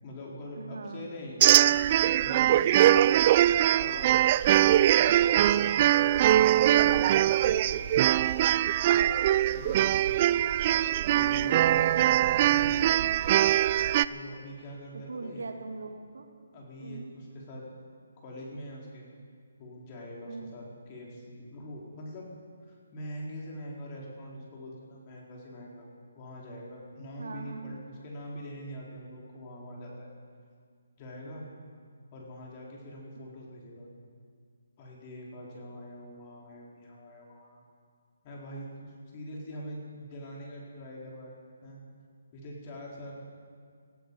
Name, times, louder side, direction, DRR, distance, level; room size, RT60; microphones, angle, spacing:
voice 1, 0.0-1.4 2.0-2.7 3.8-8.4 9.5-9.9 11.1-13.0 14.1-15.5 16.5-17.7 18.2-19.1 19.6-22.3 22.6-25.9 26.1-30.1 31.0-31.5 32.1-33.9 34.8-37.6 38.2-41.4 41.6-41.8 42.3-43.1, equal, 25° left, -3 dB, 3.8 m, -43 dB
voice 2, 0.6-1.1 11.1-11.7 13.0-13.2 14.9-16.3 16.8-17.1 20.3-20.5 27.2-27.8, right 3 dB, 75° right, 5 dB, 1.9 m, -41 dB
sound 1, 1.4-14.1, right 12 dB, 30° right, 0.3 m, -22 dB
18.0 x 15.0 x 5.3 m, 2.1 s
hypercardioid pair, 160°, 0 cm